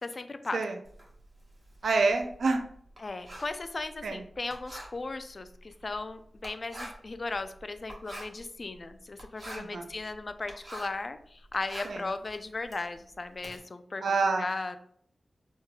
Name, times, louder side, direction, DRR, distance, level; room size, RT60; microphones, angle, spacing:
voice 1, 0.0-0.6 3.0-14.0 14.4-14.8, left 3 dB, 55° left, 10 dB, 0.3 m, -37 dB
Writing, 0.8-11.1 11.4-13.6, right 1 dB, 50° right, 1.1 m, -46 dB
voice 2, 1.8-2.6 4.0-4.2 9.6-9.9 11.8-12.0 14.0-14.5, right 3 dB, 85° right, 5 dB, 0.4 m, -27 dB
3.5 x 3.0 x 2.2 m, 0.63 s
cardioid pair, 45°, 0 cm